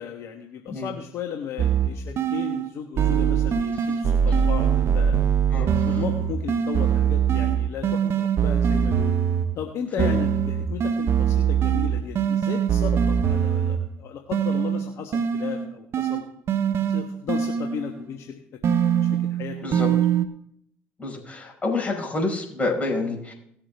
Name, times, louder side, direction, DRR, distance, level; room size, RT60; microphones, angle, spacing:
voice 1, 0.0-5.3 5.8-9.2 9.5-16.3 16.8-18.4 19.0-19.6, left 8 dB, 65° left, 3 dB, 1.3 m, -35 dB
sound 1, 1.6-2.7 3.0-9.6 10.0-14.0 14.3-18.0 18.6-20.3, right 8 dB, 55° right, 0.9 m, -23 dB
voice 2, 5.5-6.0 10.0-10.1 19.6-19.9 21.0-23.3, left 2 dB, 25° left, -1 dB, 4.9 m, -28 dB
18.5 x 7.4 x 3.5 m, 0.71 s
hypercardioid pair, 65°, 5 cm